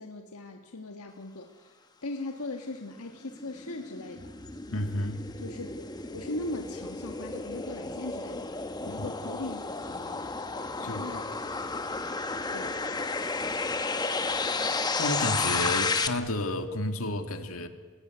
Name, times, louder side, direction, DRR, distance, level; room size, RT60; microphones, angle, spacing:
voice 1, 0.0-4.3 5.4-5.9 6.1-10.3 10.8-11.3 12.5-12.8, left 2 dB, 85° left, 3 dB, 1.5 m, -39 dB
sound 1, 2.9-16.1, left 3 dB, 20° left, 1.0 m, -32 dB
sound 2, 4.1-15.0, left 1 dB, 70° right, 7.8 m, -55 dB
voice 2, 4.7-5.2 8.8-8.9 10.8-11.0 15.0-17.7, left 1 dB, 70° left, 6 dB, 2.0 m, -31 dB
28.0 x 17.0 x 9.3 m, 1.5 s
head